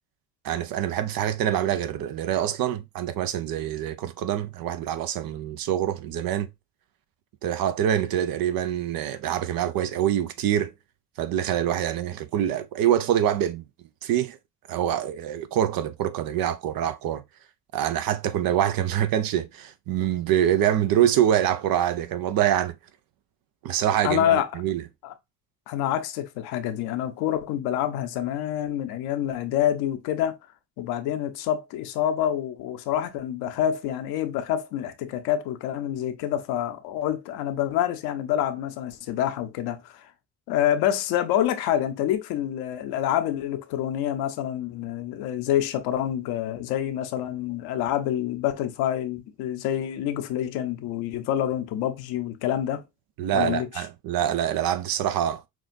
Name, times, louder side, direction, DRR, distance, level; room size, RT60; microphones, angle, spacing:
voice 1, 0.4-6.5 7.4-10.7 11.2-14.4 14.7-17.2 17.7-22.8 23.6-24.8 53.2-55.5, right 10 dB, 65° right, 0.7 m, -25 dB
voice 2, 24.0-24.5 25.0-25.1 25.7-30.4 30.8-40.1 40.5-52.8 53.3-53.7, left 11 dB, 80° left, 0.8 m, -27 dB
6.1 x 2.4 x 2.5 m
hypercardioid pair, 55°, 37 cm